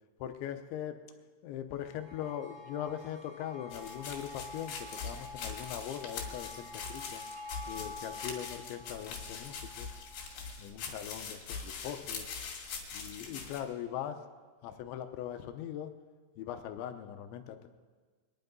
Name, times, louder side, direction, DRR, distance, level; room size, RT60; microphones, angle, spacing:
voice 1, 0.2-1.0 1.4-7.2 7.7-9.9 10.6-12.3 12.9-14.2 14.6-15.9 16.4-17.7, left 10 dB, 80° left, 7 dB, 3.0 m, -40 dB
sound 1, 1.8-10.4, left 3 dB, 30° right, 2.1 m, -48 dB
sound 2, 3.7-13.6, left 5 dB, 60° left, 3.9 m, -42 dB
23.5 x 10.5 x 5.3 m, 1.4 s
omnidirectional pair, 5.7 m